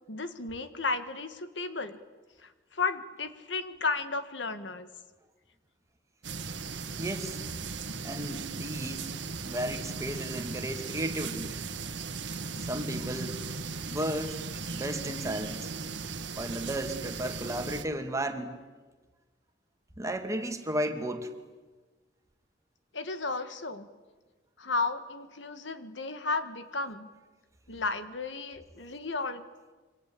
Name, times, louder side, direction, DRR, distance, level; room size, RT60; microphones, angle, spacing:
voice 1, 0.1-2.0 2.4-4.9 22.9-23.9 24.6-27.1 27.7-29.4, left 3 dB, 75° left, 10 dB, 1.9 m, -33 dB
sound 1, 6.2-17.8, right 4 dB, 70° right, 1.6 m, -37 dB
voice 2, 7.0-7.4 8.0-9.2 9.4-11.5 12.6-13.6 13.8-15.7 16.3-18.6 20.0-21.3, right 1 dB, 15° right, 6 dB, 2.3 m, -34 dB
27.5 x 25.0 x 8.6 m, 1.3 s
head